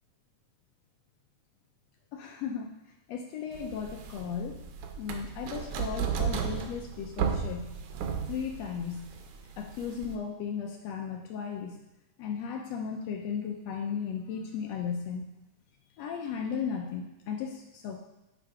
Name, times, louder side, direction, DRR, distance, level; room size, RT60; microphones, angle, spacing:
voice 1, 2.1-2.7 3.1-4.6 4.9-7.7 8.2-9.1 9.6-11.8 12.2-15.3 16.0-18.0, left 7 dB, 80° left, 2 dB, 1.5 m, -35 dB
sound 1, 3.6-10.2, right 7 dB, 80° right, 2.1 m, -34 dB
8.0 x 3.7 x 4.8 m, 0.99 s
omnidirectional pair, 3.5 m